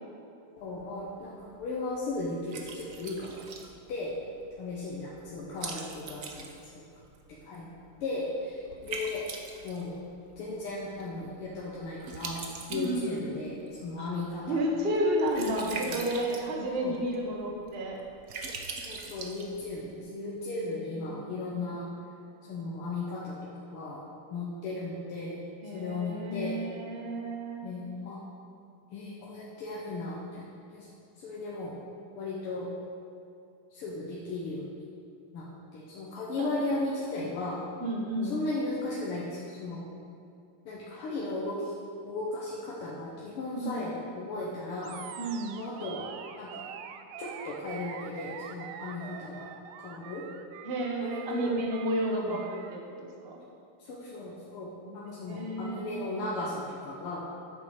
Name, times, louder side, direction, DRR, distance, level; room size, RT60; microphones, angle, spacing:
voice 1, 0.6-3.4 3.9-4.1 4.6-6.8 7.3-7.7 8.0-9.2 9.6-10.0 10.4-12.4 12.7-14.6 15.6-16.0 16.8-17.0 18.8-21.8 22.4-24.0 24.3-25.4 25.7-26.6 27.6-28.2 28.9-30.4 30.7-30.9 31.2-31.7 32.2-32.7 33.7-34.6 35.3-37.6 38.2-39.8 40.7-41.7 42.0-45.0 45.6-46.1 46.4-46.7 47.2-49.5 49.8-50.2 51.0-51.6 52.1-52.4 53.8-57.3, left 2 dB, 90° left, -5 dB, 2.0 m, -36 dB
Liquid, 0.6-20.0, right 4 dB, 65° right, 0.8 m, -44 dB
voice 2, 12.7-13.3 14.0-14.1 14.5-18.0 20.1-21.8 25.6-27.7 36.4-36.5 37.8-38.3 43.5-43.9 45.2-45.6 50.6-53.4 54.8-56.2, right 1 dB, 35° right, 0 dB, 1.1 m, -32 dB
Animal, 44.8-52.8, right 9 dB, 85° right, 1.4 m, -44 dB
8.6 x 7.4 x 5.1 m, 2.6 s
omnidirectional pair, 2.4 m